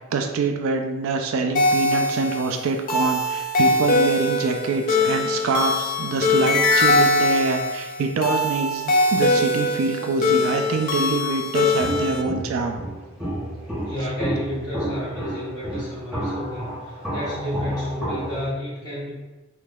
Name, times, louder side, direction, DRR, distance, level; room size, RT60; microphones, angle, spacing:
voice 1, 0.1-12.8, right 4 dB, 75° right, 4 dB, 0.3 m, -25 dB
sound 1, 1.6-12.2, left 2 dB, 40° left, 0.3 m, -22 dB
Walk footsteps, 11.8-18.5, right 1 dB, 5° right, 0.7 m, -31 dB
voice 2, 13.8-19.1, left 1 dB, 20° left, -10 dB, 1.3 m, -31 dB
3.4 x 3.0 x 2.3 m, 1.1 s
head